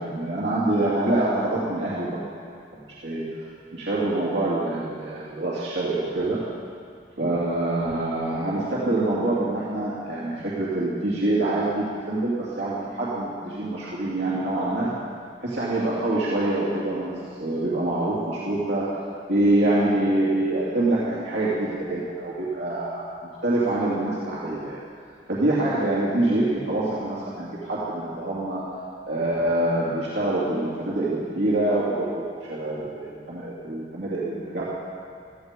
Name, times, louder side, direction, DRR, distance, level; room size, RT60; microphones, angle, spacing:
voice 1, 0.0-2.2 2.7-3.4 3.7-6.4 7.2-14.9 15.4-18.9 19.3-23.0 23.4-24.8 25.3-28.6 29.1-34.7, right 2 dB, 70° right, -8 dB, 2.7 m, -25 dB
16.5 x 13.5 x 5.2 m, 2.2 s
head